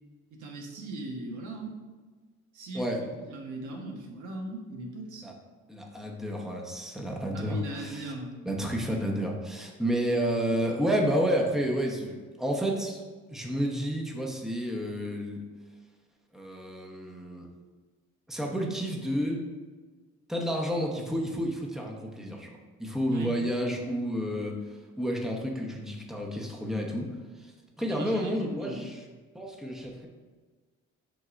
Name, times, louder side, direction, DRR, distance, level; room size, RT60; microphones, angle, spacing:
voice 1, 0.3-1.8 2.5-5.3 7.3-8.4 23.1-23.3 27.9-28.9, right 2 dB, 75° right, 0 dB, 1.3 m, -39 dB
voice 2, 5.7-8.1 8.4-13.0 13.3-15.4 16.3-17.5 18.3-19.5 20.3-22.5 22.8-24.6 25.0-27.5 27.8-29.0 29.3-30.1, equal, ahead, -1 dB, 1.0 m, -30 dB
7.7 x 5.3 x 2.5 m, 1.4 s
cardioid pair, 90°, 30 cm